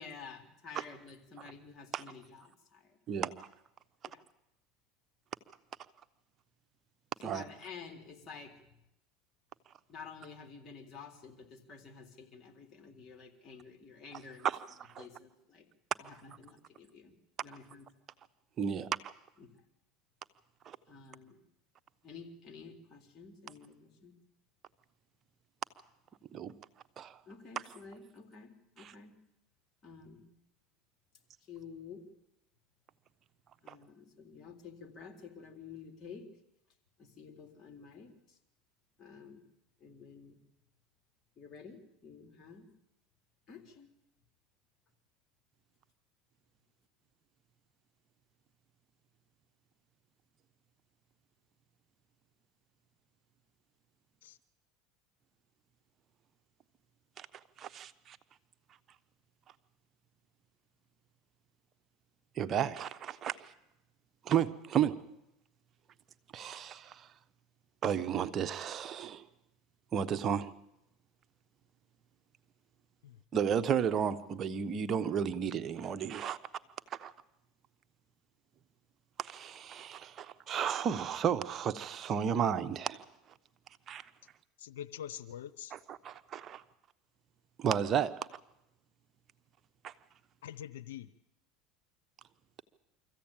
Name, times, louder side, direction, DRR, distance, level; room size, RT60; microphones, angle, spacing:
voice 1, 0.0-3.0 4.1-4.2 7.2-8.6 9.9-14.5 15.0-15.7 16.0-17.1 17.4-17.9 19.4-19.5 20.9-21.4 22.0-24.2 27.3-29.1 29.8-30.2 31.5-32.0 33.6-36.3 37.0-38.4 39.0-39.4 39.8-40.4 41.4-42.6 43.5-43.9, left 5 dB, 40° left, 3.7 m, -50 dB
voice 2, 18.6-19.1 20.7-20.8 26.3-26.5 27.0-27.2 28.8-28.9 33.7-33.8 57.2-57.3 57.6-58.2 62.4-63.4 64.2-65.0 66.3-67.1 67.8-69.2 69.9-70.5 73.3-76.4 76.9-77.1 79.2-83.0 83.9-84.0 85.7-86.6 87.6-88.2 89.8-89.9, right 8 dB, 40° right, 1.1 m, -33 dB
voice 3, 84.6-85.7 90.4-91.1, left 10 dB, 90° left, 0.7 m, -44 dB
24.5 x 15.0 x 9.0 m
supercardioid pair, 100°, 0 cm